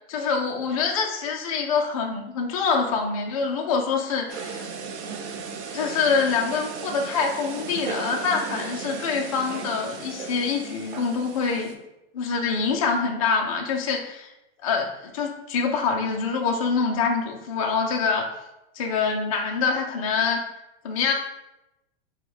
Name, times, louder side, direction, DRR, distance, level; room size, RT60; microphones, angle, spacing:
voice 1, 0.1-4.7 5.7-11.8 12.1-14.3 14.6-18.3 18.8-20.4 20.8-21.1, left 5 dB, 35° left, 1 dB, 0.4 m, -25 dB
sound 1, 4.3-11.7, right 5 dB, 85° right, 0.8 m, -35 dB
4.8 x 2.2 x 4.3 m, 0.90 s
supercardioid pair, 175°, 33 cm